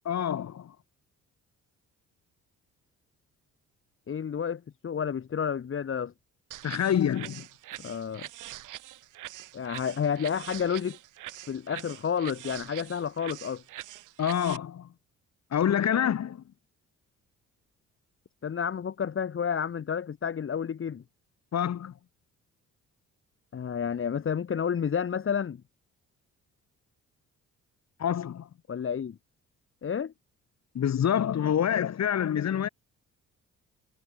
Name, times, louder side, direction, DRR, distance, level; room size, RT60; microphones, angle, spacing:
voice 1, 0.1-0.7 6.6-7.5 14.2-14.9 15.5-16.4 21.5-21.9 28.0-28.5 30.7-32.7, left 9 dB, 60° left, 5.1 m, -27 dB
voice 2, 4.1-6.1 7.8-8.3 9.5-11.0 11.5-13.6 18.4-21.0 23.5-25.6 28.7-29.2 29.8-30.1, left 7 dB, 45° left, 1.9 m, -30 dB
sound 1, 6.5-14.6, right 15 dB, 90° right, 6.8 m, -44 dB
cardioid pair, 90°, 30 cm